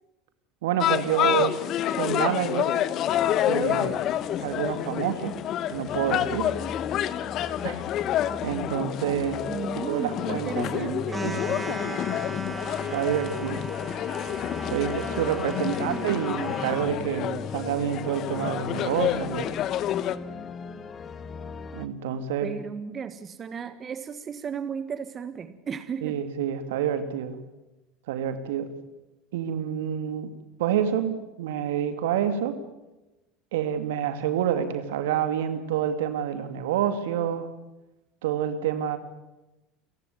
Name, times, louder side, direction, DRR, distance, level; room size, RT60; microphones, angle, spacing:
voice 1, 0.6-1.6 1.9-2.7 3.5-4.0 4.4-5.3 5.7-6.5 7.6-7.8 8.4-9.4 9.9-10.9 11.2-12.2 12.9-13.6 14.7-19.5 21.7-22.5 26.0-27.4 28.1-28.7 29.3-30.3 30.6-32.6 33.5-37.5 38.2-39.0, right 9 dB, 70° right, 9 dB, 2.4 m, -28 dB
sound 1, 0.8-20.2, left 11 dB, 50° left, 1.2 m, -29 dB
sound 2, 3.1-21.9, left 5 dB, 35° left, 1.8 m, -39 dB
voice 2, 9.5-11.4 15.5-16.3 22.4-26.2, right 6 dB, 35° right, 11 dB, 1.5 m, -35 dB
sound 3, 11.1-16.9, right 3 dB, 15° right, 2.9 m, -38 dB
29.0 x 16.0 x 9.6 m, 1.0 s
hypercardioid pair, 75°, 0 cm